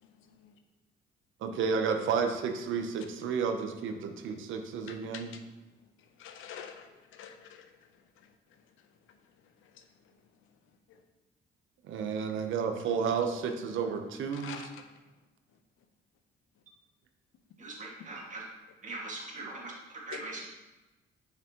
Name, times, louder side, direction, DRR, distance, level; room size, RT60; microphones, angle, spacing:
voice 1, 0.0-0.5 4.9-5.4 6.0-7.7 8.2-8.3 9.6-9.9 10.9-11.0 14.3-15.0 20.1-20.2, left 8 dB, 85° left, 7 dB, 0.7 m, -47 dB
voice 2, 1.4-5.3 11.9-14.6, right 6 dB, 80° right, 6 dB, 0.7 m, -31 dB
voice 3, 17.6-18.4 18.8-19.7 20.1-20.5, right 2 dB, 40° right, -3 dB, 1.9 m, -41 dB
7.0 x 5.8 x 2.9 m, 1.1 s
cardioid pair, 90°, 20 cm